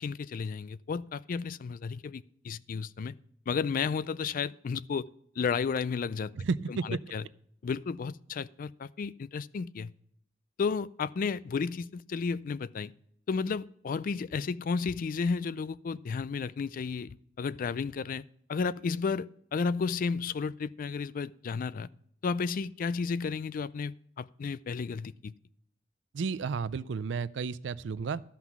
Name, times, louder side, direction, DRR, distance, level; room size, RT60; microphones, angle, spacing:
voice 1, 0.0-3.2 3.5-5.1 5.4-6.3 6.7-7.2 7.6-9.9 10.6-12.9 13.3-18.2 18.5-21.9 22.2-25.3, left 5 dB, 50° left, 18 dB, 0.3 m, -33 dB
voice 2, 6.4-7.0 26.1-28.2, right 5 dB, 75° right, 17 dB, 0.4 m, -32 dB
13.0 x 5.9 x 5.9 m, 0.68 s
head